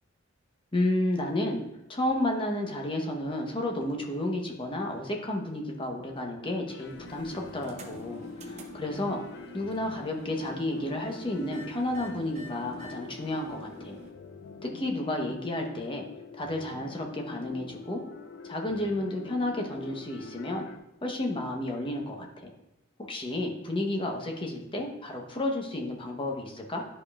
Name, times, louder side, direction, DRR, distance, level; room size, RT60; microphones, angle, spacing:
voice 1, 0.7-1.6 1.9-9.2 9.5-14.0 14.6-16.0 16.3-18.0 18.4-20.7 21.0-22.5 23.1-26.9, left 1 dB, 25° left, 1 dB, 1.0 m, -31 dB
sound 1, 6.7-20.8, left 4 dB, 60° left, 0.5 m, -45 dB
sound 2, 6.8-14.1, right 1 dB, 35° right, 0.9 m, -48 dB
11.0 x 5.0 x 2.4 m, 0.89 s
head